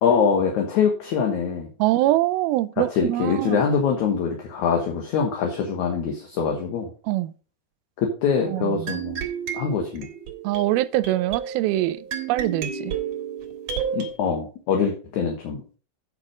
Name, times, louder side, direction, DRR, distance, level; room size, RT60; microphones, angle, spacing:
voice 1, 0.0-1.7 2.8-6.9 8.0-9.2 9.5-10.1 13.9-15.6, left 6 dB, 65° left, 2.3 m, -23 dB
voice 2, 1.8-3.6 7.1-7.3 8.5-9.0 10.4-12.9, right 15 dB, 85° right, 2.4 m, -24 dB
sound 1, 8.9-14.1, right 7 dB, 55° right, 2.2 m, -31 dB
8.8 x 6.0 x 4.9 m
omnidirectional pair, 4.2 m